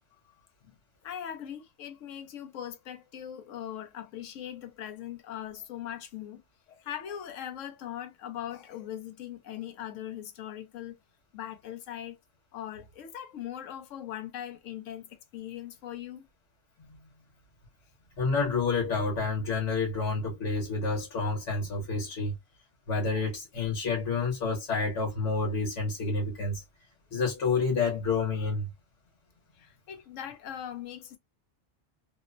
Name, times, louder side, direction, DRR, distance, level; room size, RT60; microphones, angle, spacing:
voice 1, 1.0-6.4 6.7-11.0 11.3-12.2 12.5-16.2 29.6-31.2, left 10 dB, 85° left, 1.0 m, -40 dB
voice 2, 18.2-22.3 22.9-26.6 27.1-28.7, left 4 dB, 70° left, 1.4 m, -29 dB
2.9 x 2.0 x 2.4 m
omnidirectional pair, 1.3 m